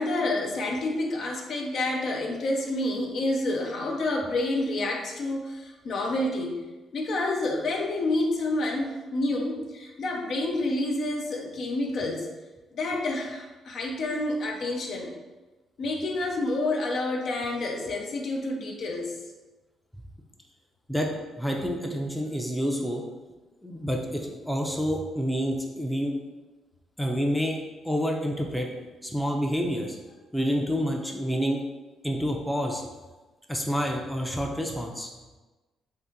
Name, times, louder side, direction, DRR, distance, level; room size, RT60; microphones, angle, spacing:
voice 1, 0.0-6.6 6.9-12.3 12.7-15.1 15.8-19.2, left 2 dB, 60° left, 1 dB, 0.5 m, -28 dB
voice 2, 21.4-23.0 23.6-26.1 27.0-27.6 27.8-28.7 29.0-30.0 30.3-31.6 32.0-32.8 33.5-35.1, equal, ahead, 1 dB, 0.4 m, -28 dB
2.7 x 2.5 x 3.6 m, 1.2 s
cardioid pair, 90°, 0 cm